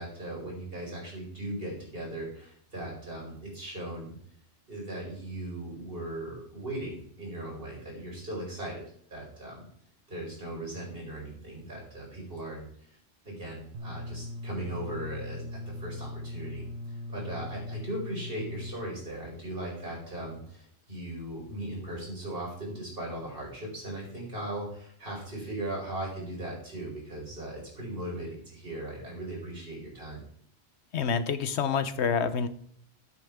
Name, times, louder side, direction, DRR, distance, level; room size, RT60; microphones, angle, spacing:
voice 1, 0.0-4.2 4.7-8.8 9.1-9.7 10.1-13.0 13.2-16.6 17.1-30.2, right 1 dB, 45° right, -3 dB, 5.3 m, -38 dB
sound 1, 13.7-18.7, left 1 dB, 90° right, 1.5 m, -39 dB
voice 2, 30.9-32.5, left 6 dB, 65° left, 12 dB, 1.1 m, -27 dB
13.5 x 8.9 x 3.6 m, 0.64 s
omnidirectional pair, 1.3 m